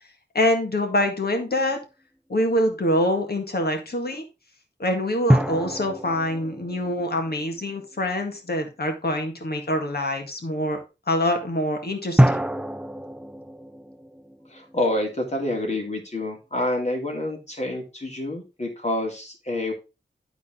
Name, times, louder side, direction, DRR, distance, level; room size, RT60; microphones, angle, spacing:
voice 1, 0.3-1.8 2.3-4.2 4.8-10.8 11.1-12.4, left 1 dB, 60° left, 4 dB, 1.9 m, -25 dB
sound 1, 1.0-1.6 5.3-8.1 12.2-15.4, equal, 5° right, 0.5 m, -26 dB
voice 2, 14.5-19.7, left 1 dB, 35° left, 1 dB, 2.8 m, -28 dB
12.0 x 4.1 x 3.7 m, 0.29 s
wide cardioid pair, 55°, 19 cm